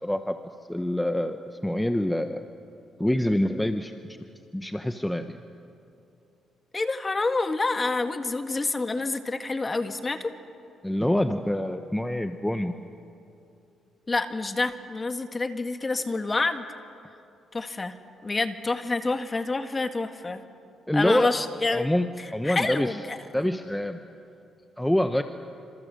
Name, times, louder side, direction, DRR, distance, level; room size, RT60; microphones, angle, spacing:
voice 1, 0.0-0.4 0.7-2.4 3.0-3.9 4.5-5.4 10.8-12.7 20.9-21.3 21.7-23.0 23.3-24.0 24.8-25.2, left 1 dB, 5° left, 7 dB, 1.0 m, -26 dB
voice 2, 6.7-10.3 14.1-16.6 17.5-17.9 18.2-20.4 20.9-21.9 22.2-23.2, left 3 dB, 25° left, 8 dB, 1.8 m, -28 dB
28.0 x 26.5 x 7.8 m, 2.7 s
cardioid pair, 90°, 0 cm